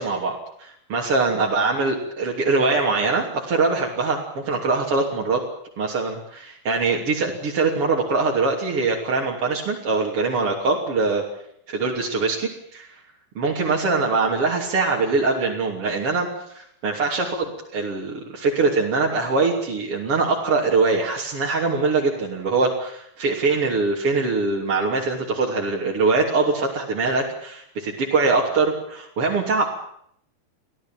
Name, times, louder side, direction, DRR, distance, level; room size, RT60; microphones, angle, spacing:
voice 1, 0.0-5.4 5.8-11.2 11.7-12.9 13.4-16.3 16.5-29.6, right 3 dB, 35° right, -3 dB, 3.6 m, -23 dB
25.5 x 16.5 x 9.2 m, 0.71 s
omnidirectional pair, 4.7 m